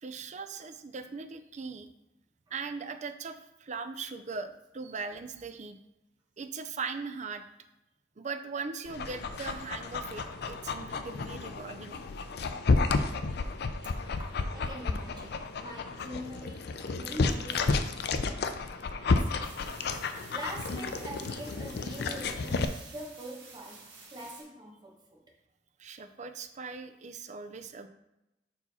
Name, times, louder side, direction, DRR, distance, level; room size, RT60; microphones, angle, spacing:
voice 1, 0.0-1.9 2.5-5.8 6.4-7.4 8.2-12.0 25.8-27.9, right 4 dB, 40° right, 9 dB, 0.5 m, -39 dB
Dog, 8.9-22.7, left 3 dB, 65° left, 0.4 m, -31 dB
voice 2, 14.2-18.5 19.1-19.5 20.3-25.2, right 1 dB, 25° right, -1 dB, 1.3 m, -44 dB
sound 1, 19.4-24.4, right 4 dB, 85° right, 1.7 m, -51 dB
5.7 x 4.6 x 4.1 m, 0.92 s
head